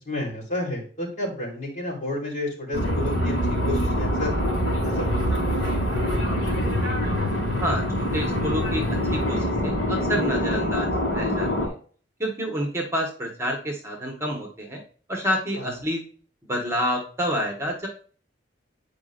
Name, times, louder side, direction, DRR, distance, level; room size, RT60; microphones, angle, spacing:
voice 1, 0.1-3.3 3.7-4.3 4.8-6.0 15.6-15.8, left 1 dB, 45° left, -3 dB, 3.9 m, -31 dB
sound 1, 2.7-11.7, equal, 85° left, 3.7 m, -24 dB
voice 2, 7.6-11.7 12.2-14.8 15.1-16.0 16.5-17.9, equal, 15° right, 1 dB, 1.4 m, -28 dB
9.3 x 5.2 x 2.5 m, 0.41 s
head